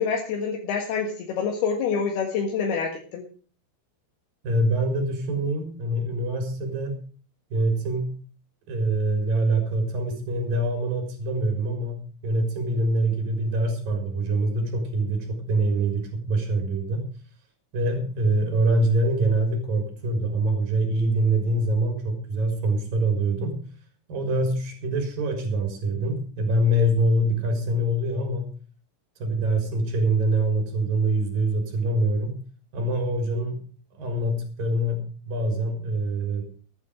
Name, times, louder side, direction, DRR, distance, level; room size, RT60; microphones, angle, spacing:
voice 1, 0.0-3.2, left 6 dB, 75° left, 2 dB, 3.5 m, -27 dB
voice 2, 4.4-7.0 7.5-8.1 8.7-17.0 17.7-23.6 24.1-28.5 29.2-32.4 32.7-33.6 33.9-36.5, right 1 dB, 60° right, 4 dB, 5.6 m, -24 dB
15.5 x 11.0 x 4.9 m, 0.39 s
omnidirectional pair, 4.6 m